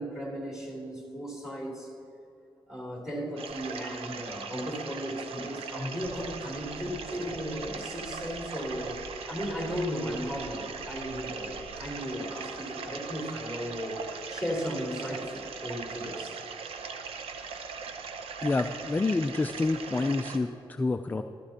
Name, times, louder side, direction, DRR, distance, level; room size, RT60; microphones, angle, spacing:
voice 1, 0.0-1.9 2.7-9.0 9.3-16.4, equal, 5° right, -3 dB, 3.0 m, -36 dB
sound 1, 3.4-20.4, right 5 dB, 90° right, 0.7 m, -40 dB
sound 2, 6.0-12.0, right 2 dB, 50° right, 0.9 m, -50 dB
voice 2, 18.4-21.2, left 3 dB, 20° left, 8 dB, 0.4 m, -28 dB
14.5 x 13.5 x 2.9 m, 2.8 s
cardioid pair, 100°, 10 cm